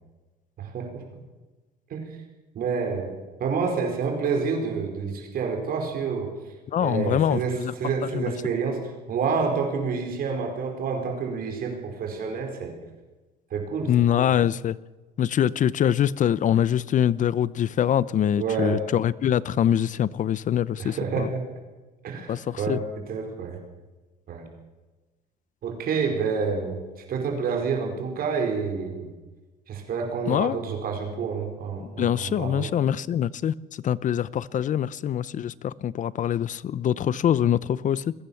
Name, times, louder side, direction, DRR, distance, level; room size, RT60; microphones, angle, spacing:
voice 1, 0.6-1.0 1.9-2.2 2.5-3.1 3.4-6.3 6.8-8.8 9.1-12.7 13.5-13.9 14.1-14.3 18.4-18.8 20.8-21.4 22.0-23.6 24.3-24.4 25.6-26.8 27.1-29.1 29.7-32.7, right 5 dB, 60° right, 4.9 m, -28 dB
voice 2, 6.7-8.3 13.9-14.8 15.2-21.3 22.3-22.8 30.3-30.6 31.8-38.1, left 10 dB, 50° left, 0.8 m, -24 dB
22.5 x 16.5 x 7.2 m
cardioid pair, 110°, 17 cm